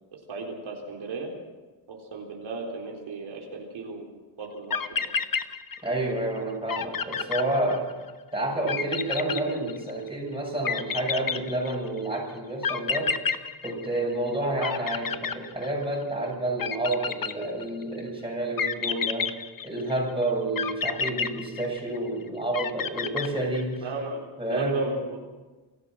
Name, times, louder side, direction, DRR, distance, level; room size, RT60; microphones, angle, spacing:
voice 1, 0.1-1.3 1.9-4.1 4.4-5.2 23.8-25.2, right 2 dB, 75° right, -1 dB, 4.0 m, -35 dB
sound 1, 4.4-4.5 4.7-6.1 6.4-6.5 6.7-8.1 8.7-10.1 10.6-12.0 12.6-14.3 14.6-16.0 16.6-17.8 18.6-20.0 20.6-22.1 22.5-23.8, left 6 dB, 45° left, 1.0 m, -30 dB
voice 2, 5.8-7.9 8.3-13.1 13.6-19.3 19.6-23.8 24.4-24.8, right 1 dB, 10° right, -1 dB, 7.4 m, -29 dB
28.0 x 14.5 x 6.4 m, 1.2 s
wide cardioid pair, 125°, 48 cm